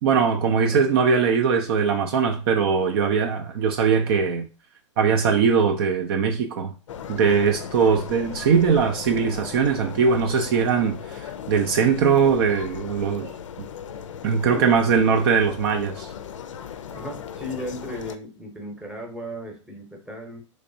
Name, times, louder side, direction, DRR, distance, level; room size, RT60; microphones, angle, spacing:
voice 1, 0.0-4.5 5.0-6.7 7.1-13.3 14.2-16.1, right 6 dB, 50° right, 0.5 m, -21 dB
sound 1, 6.9-18.2, left 8 dB, 70° left, 0.4 m, -37 dB
voice 2, 16.9-20.4, equal, 5° right, 0.9 m, -36 dB
3.3 x 3.2 x 2.7 m
hypercardioid pair, 115°, 16 cm